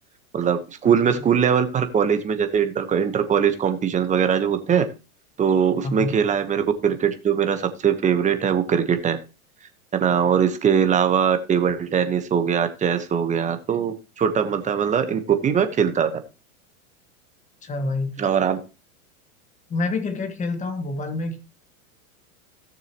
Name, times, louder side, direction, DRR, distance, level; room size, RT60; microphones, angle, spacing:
voice 1, 0.3-4.9 5.4-9.2 10.0-16.1 18.2-18.6, right 7 dB, 15° right, 1.1 m, -21 dB
voice 2, 5.8-6.1 17.6-18.2 19.7-21.4, left 3 dB, 15° left, 1.5 m, -27 dB
17.0 x 6.8 x 3.0 m
supercardioid pair, 140°, 44 cm